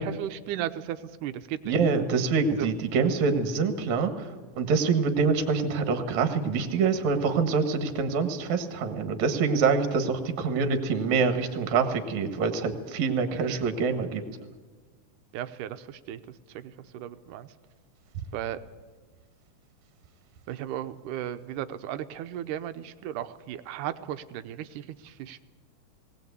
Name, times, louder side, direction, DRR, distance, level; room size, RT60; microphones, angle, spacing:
voice 1, 0.0-1.7 2.6-2.7 13.3-13.7 15.3-16.2 16.5-17.5 18.3-18.6 20.5-25.4, right 11 dB, 85° right, 11 dB, 2.3 m, -35 dB
voice 2, 1.7-4.3 4.6-14.2, right 5 dB, 65° right, 7 dB, 2.7 m, -25 dB
19.5 x 18.5 x 8.2 m, 1.4 s
omnidirectional pair, 3.6 m